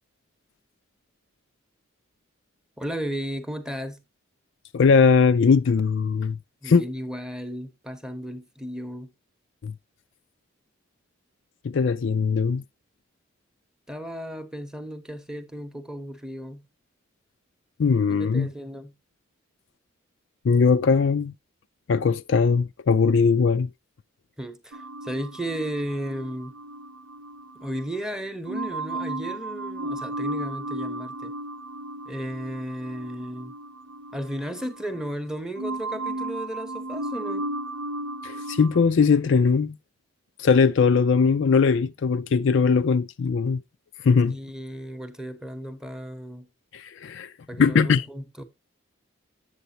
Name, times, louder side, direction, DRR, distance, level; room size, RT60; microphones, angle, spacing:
voice 1, 2.8-4.0 6.6-9.1 13.9-16.7 18.1-18.9 24.4-26.6 27.5-31.3 32.1-33.6 34.1-37.5 44.3-46.5 47.5-48.4, equal, 5° right, 0.8 m, -34 dB
voice 2, 4.7-6.4 6.6-6.8 9.6-9.7 11.6-12.6 17.8-18.5 20.4-21.3 21.9-23.7 38.2-39.8 40.4-43.6 44.0-44.4 46.7-47.3 47.6-48.0, left 5 dB, 60° left, 0.4 m, -20 dB
sound 1, 24.7-28.0 28.5-35.3 35.6-38.8, right 1 dB, 85° right, 0.8 m, -35 dB
7.9 x 7.8 x 2.8 m
head